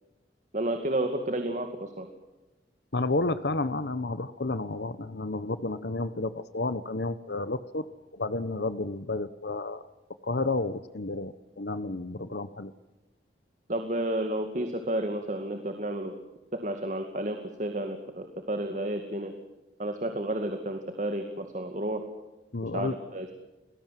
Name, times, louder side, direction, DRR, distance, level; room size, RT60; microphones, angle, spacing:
voice 1, 0.5-2.1 13.7-16.1 16.5-19.3 19.8-22.0 22.6-23.3, right 1 dB, 45° right, 6 dB, 2.2 m, -31 dB
voice 2, 2.9-9.8 10.2-12.7 22.5-22.9, left 2 dB, 70° left, 13 dB, 1.0 m, -31 dB
29.0 x 20.5 x 7.6 m, 1.1 s
head